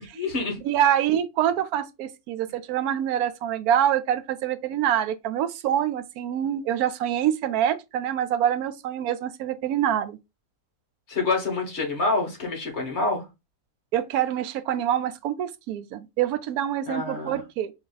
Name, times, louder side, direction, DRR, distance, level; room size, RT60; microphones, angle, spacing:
voice 1, 0.1-0.6 11.1-13.2 16.9-17.4, left 3 dB, 50° left, 1.6 m, -27 dB
voice 2, 0.6-10.2 13.9-17.7, right 10 dB, 85° right, 1.1 m, -25 dB
4.8 x 2.7 x 3.8 m
omnidirectional pair, 1.6 m